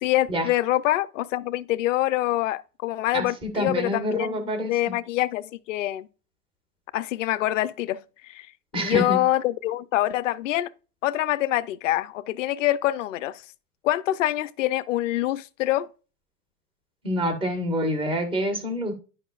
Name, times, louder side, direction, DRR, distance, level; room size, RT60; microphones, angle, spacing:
voice 1, 0.0-6.1 6.9-8.0 8.2-8.5 8.7-10.7 11.0-13.4 13.8-15.9, left 15 dB, 50° left, 0.6 m, -25 dB
voice 2, 3.1-4.9 8.7-9.2 17.0-18.9, equal, ahead, 0.3 m, -27 dB
11.5 x 5.0 x 2.4 m
hypercardioid pair, 125°, 48 cm